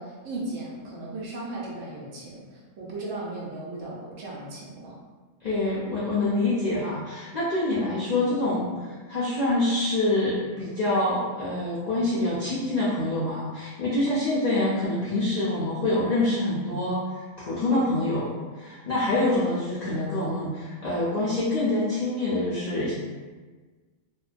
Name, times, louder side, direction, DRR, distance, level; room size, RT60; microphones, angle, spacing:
voice 1, 0.0-4.9, right 2 dB, 80° right, -4 dB, 1.0 m, -36 dB
voice 2, 5.4-18.3 18.6-22.9, left 2 dB, 65° left, -9 dB, 0.4 m, -26 dB
2.6 x 2.1 x 2.4 m, 1.4 s
omnidirectional pair, 1.3 m